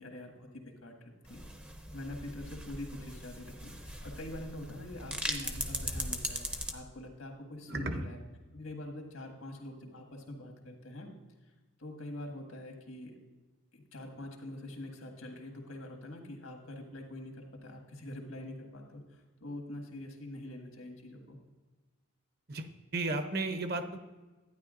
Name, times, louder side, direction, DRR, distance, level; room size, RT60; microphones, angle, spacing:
voice 1, 0.0-1.4 1.9-8.2 8.5-11.1 11.8-13.2 13.7-21.4, left 1 dB, 85° left, 2 dB, 1.7 m, -45 dB
sound 1, 1.3-6.7, right 1 dB, 5° right, 0.5 m, -39 dB
voice 2, 7.7-8.1 22.5-22.7 22.9-24.0, right 2 dB, 50° right, 8 dB, 0.7 m, -33 dB
11.5 x 9.7 x 2.5 m, 1.2 s
head